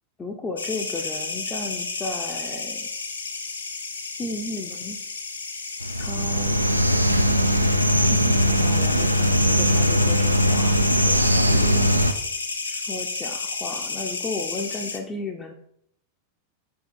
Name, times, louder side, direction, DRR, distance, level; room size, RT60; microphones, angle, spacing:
voice 1, 0.2-2.9 4.2-5.0 5.9-6.6 8.0-11.9 12.6-15.5, left 3 dB, 15° left, 1 dB, 0.6 m, -34 dB
sound 1, 0.6-15.0, left 4 dB, 75° left, 0.6 m, -32 dB
sound 2, 5.8-12.1, equal, 85° right, 0.4 m, -20 dB
4.8 x 4.8 x 4.1 m, 0.71 s
figure-of-eight pair, 90°, 0 cm